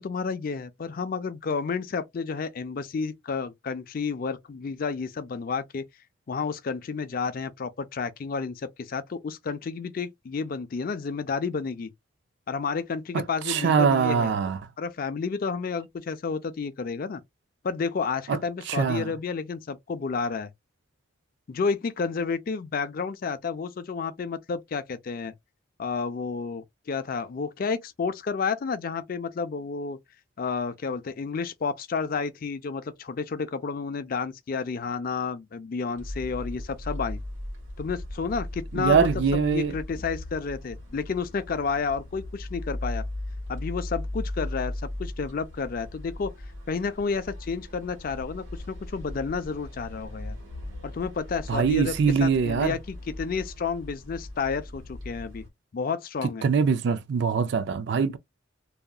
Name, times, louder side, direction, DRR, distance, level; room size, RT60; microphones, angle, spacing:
voice 1, 0.0-5.8 6.3-11.9 12.5-14.3 14.8-17.2 17.6-20.5 21.5-25.3 25.8-30.0 30.4-37.2 37.8-43.0 43.5-46.3 46.7-50.4 50.8-55.4 55.7-56.4, left 5 dB, 45° left, 0.4 m, -31 dB
voice 2, 13.1-14.6 18.3-18.4 18.7-19.1 38.7-39.7 51.5-52.8 56.4-58.2, right 6 dB, 55° right, 0.3 m, -23 dB
sound 1, 36.0-55.5, left 1 dB, 80° right, 1.4 m, -38 dB
2.7 x 2.4 x 2.3 m
head